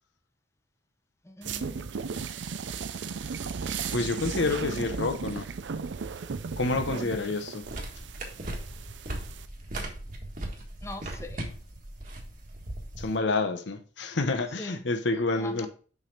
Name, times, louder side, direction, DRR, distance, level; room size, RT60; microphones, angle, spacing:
voice 1, 1.2-2.2 6.9-7.3 10.8-11.4 14.6-14.8 15.4-15.7, left 1 dB, 15° left, 0.8 m, -42 dB
sound 1, 1.4-9.5, right 5 dB, 85° right, 0.5 m, -36 dB
voice 2, 3.9-5.5 6.6-7.7 13.0-15.7, left 3 dB, 90° left, 0.9 m, -28 dB
sound 2, 7.6-13.2, right 1 dB, 50° right, 1.6 m, -38 dB
6.2 x 5.3 x 4.0 m
head